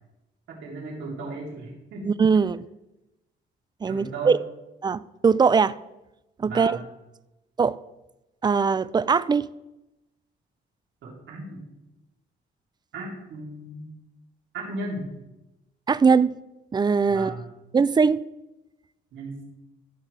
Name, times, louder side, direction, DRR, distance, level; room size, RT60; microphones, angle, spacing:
voice 1, 0.5-2.1 3.9-4.3 6.4-6.8 11.0-11.6 12.9-13.9 14.5-15.1 17.1-17.4 19.1-19.4, right 2 dB, 75° right, 3.2 m, -35 dB
voice 2, 2.0-2.7 3.8-4.4 4.8-5.8 6.4-6.8 7.6-7.8 8.4-9.5 15.9-16.4 16.7-17.3 17.7-18.2, right 5 dB, 20° right, 0.3 m, -21 dB
13.5 x 6.0 x 3.4 m
cardioid pair, 90°, 20 cm